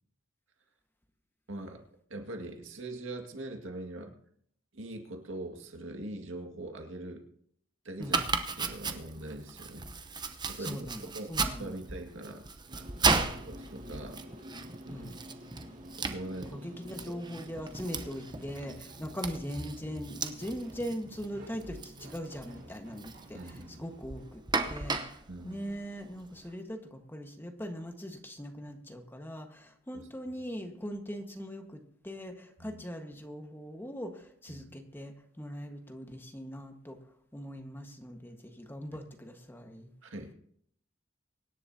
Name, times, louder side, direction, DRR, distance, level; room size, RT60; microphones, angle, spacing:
voice 1, 1.5-1.8 2.1-4.2 4.7-7.2 7.8-8.2 8.6-9.9 10.5-12.5 13.1-14.2 14.9-15.2 16.0-16.7 17.1-17.2 19.1-19.2 23.3-23.8 25.3-25.7 29.9-30.1 32.6-32.8 34.5-34.7 40.0-40.3, right 1 dB, 90° right, 3 dB, 2.0 m, -42 dB
Domestic sounds home sounds, 8.0-26.5, right 4 dB, 20° right, 0.9 m, -36 dB
voice 2, 10.6-11.8 14.9-15.2 16.5-24.4 24.7-37.0 37.3-39.9, equal, 10° left, 4 dB, 1.5 m, -41 dB
sound 1, 12.7-19.9, equal, 40° right, 2.3 m, -50 dB
sound 2, 17.8-24.3, equal, 60° right, 4.4 m, -51 dB
24.5 x 11.0 x 2.8 m, 0.66 s
head